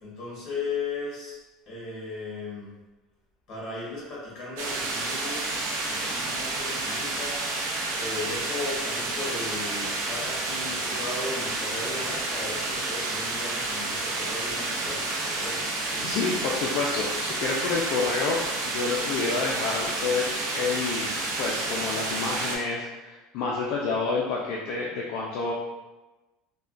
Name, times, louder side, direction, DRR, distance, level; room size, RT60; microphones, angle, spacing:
voice 1, 0.0-1.4 1.7-2.8 3.5-7.5 8.0-15.7, left 3 dB, 35° left, -6 dB, 1.3 m, -36 dB
sound 1, 4.6-22.6, right 2 dB, 80° right, 0.6 m, -30 dB
voice 2, 16.0-20.3 20.5-25.5, left 4 dB, 55° left, -3 dB, 0.4 m, -29 dB
3.4 x 2.2 x 2.4 m, 1.1 s
cardioid pair, 165°, 0 cm